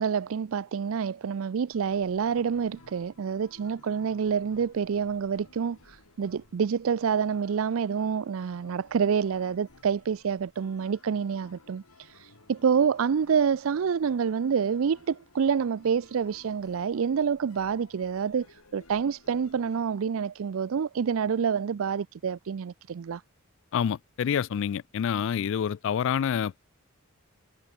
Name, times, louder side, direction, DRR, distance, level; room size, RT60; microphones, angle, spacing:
voice 1, 0.0-23.2, right 6 dB, 65° right, 0.4 m, -27 dB
sound 1, 1.7-19.8, left 2 dB, 85° left, 4.7 m, -57 dB
voice 2, 23.7-26.6, left 8 dB, 60° left, 0.3 m, -27 dB
head